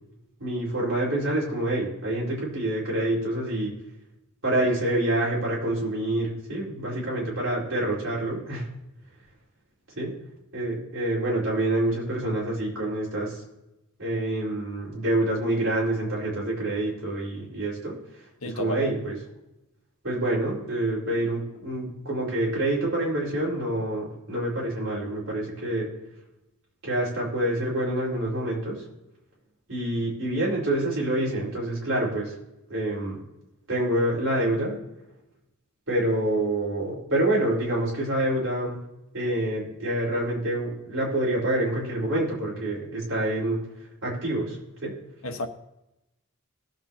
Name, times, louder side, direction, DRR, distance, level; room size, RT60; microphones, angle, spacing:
voice 1, 0.4-3.7 4.4-8.7 9.9-10.1 10.5-13.4 14.0-18.2 18.5-19.2 20.0-25.9 26.8-28.8 29.7-32.3 32.7-33.2 33.7-34.8 35.9-38.8 39.1-43.6 44.0-45.0, right 1 dB, 65° right, 4.6 m, -27 dB
voice 2, 18.4-18.9 45.2-45.5, left 1 dB, 80° left, 1.2 m, -31 dB
20.5 x 7.2 x 2.9 m
head